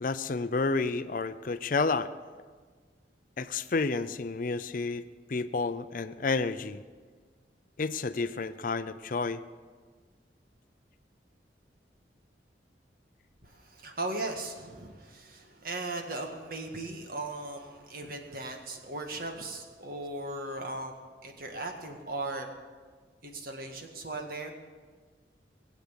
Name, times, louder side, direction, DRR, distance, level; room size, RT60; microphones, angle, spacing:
voice 1, 0.0-2.1 3.4-6.8 7.8-9.4, left 4 dB, 50° left, 12 dB, 0.5 m, -30 dB
voice 2, 13.4-22.5 23.2-24.5, right 2 dB, 55° right, 3 dB, 1.9 m, -38 dB
19.5 x 8.4 x 8.3 m, 1.5 s
head